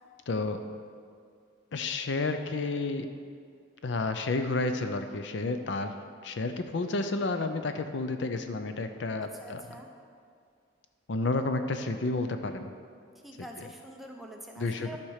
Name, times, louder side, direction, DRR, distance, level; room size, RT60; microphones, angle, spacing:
voice 1, 0.3-0.6 1.7-3.1 3.8-5.9 6.2-9.6 11.1-12.7 13.4-13.5 14.6-15.0, left 3 dB, 60° left, 8 dB, 0.5 m, -31 dB
voice 2, 9.2-9.9 13.2-15.0, right 1 dB, ahead, 0 dB, 0.7 m, -45 dB
12.0 x 4.4 x 6.4 m, 2.2 s
head